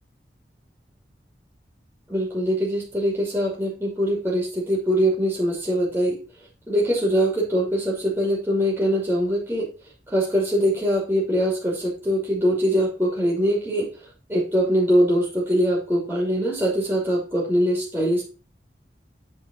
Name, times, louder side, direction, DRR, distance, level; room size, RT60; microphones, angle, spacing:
voice 1, 2.1-6.2 6.7-9.7 10.1-13.9 14.3-18.2, equal, 10° right, -5 dB, 2.5 m, -22 dB
8.6 x 4.4 x 5.4 m, 0.36 s
head